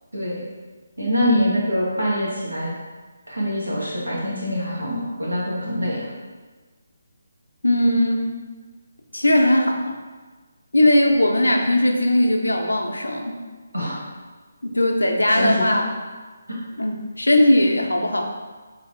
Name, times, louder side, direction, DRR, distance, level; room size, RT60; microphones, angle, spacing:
voice 1, 1.0-2.7 3.3-6.1 13.7-14.0 15.3-15.8, equal, 90° right, -5 dB, 1.2 m, -24 dB
voice 2, 7.6-8.2 9.1-10.0 10.7-13.4 14.6-15.8 16.8-18.2, left 1 dB, 85° left, 2 dB, 0.5 m, -19 dB
3.6 x 3.1 x 2.6 m, 1.3 s
figure-of-eight pair, 150°, 0 cm